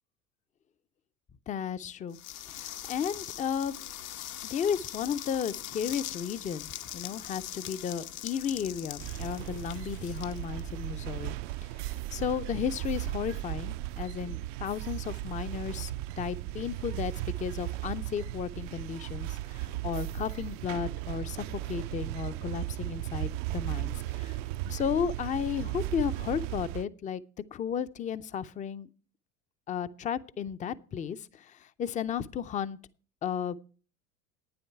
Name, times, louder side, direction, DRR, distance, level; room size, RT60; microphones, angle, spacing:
voice 1, 1.5-2.2 2.5-3.8 4.5-11.4 11.8-24.4 24.6-27.2 27.5-28.9 29.7-32.8 33.2-33.6, left 8 dB, 20° left, 0.5 m, -34 dB
sound 1, 2.1-11.1, left 12 dB, 75° left, 1.0 m, -42 dB
sound 2, 9.0-26.8, right 16 dB, 60° right, 0.5 m, -36 dB
11.5 x 9.5 x 4.6 m
hypercardioid pair, 85°, 43 cm